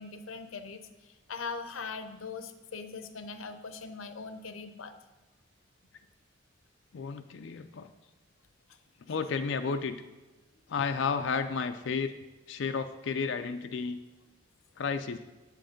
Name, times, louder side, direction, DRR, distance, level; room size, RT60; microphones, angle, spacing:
voice 1, 0.0-4.9, left 4 dB, 90° left, 9 dB, 0.8 m, -41 dB
voice 2, 6.9-7.9 9.1-10.0 10.7-12.1 12.5-14.0 14.8-15.2, left 5 dB, 65° left, 8 dB, 0.4 m, -32 dB
7.7 x 7.6 x 5.1 m, 1.1 s
head